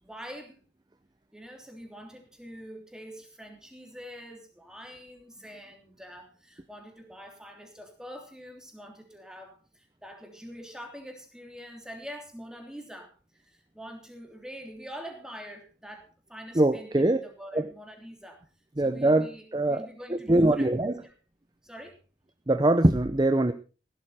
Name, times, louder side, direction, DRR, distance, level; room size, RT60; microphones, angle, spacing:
voice 1, 0.0-0.6 1.3-18.4 18.8-20.7 21.0-21.1 21.6-22.0, equal, 5° right, 3 dB, 3.2 m, -45 dB
voice 2, 16.5-17.2 17.5-17.7 18.8-21.0 22.5-23.5, right 1 dB, 25° right, 9 dB, 0.6 m, -23 dB
16.0 x 12.0 x 4.2 m, 0.35 s
head